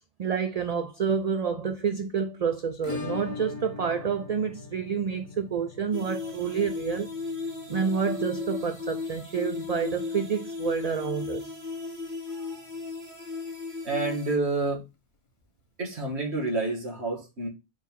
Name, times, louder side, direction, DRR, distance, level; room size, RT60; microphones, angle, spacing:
voice 1, 0.2-7.1 7.7-11.6, right 6 dB, 50° right, 0.5 m, -29 dB
Acoustic guitar / Strum, 2.8-11.4 11.7-11.8 12.1-12.2 12.6-12.7 14.7-14.8 15.9-16.0, left 4 dB, 50° left, 1.3 m, -42 dB
sound 1, 5.9-14.3, left 4 dB, 30° right, 2.4 m, -35 dB
voice 2, 13.8-14.8 15.8-17.5, right 3 dB, 80° right, 2.1 m, -29 dB
4.6 x 4.3 x 5.3 m
omnidirectional pair, 1.1 m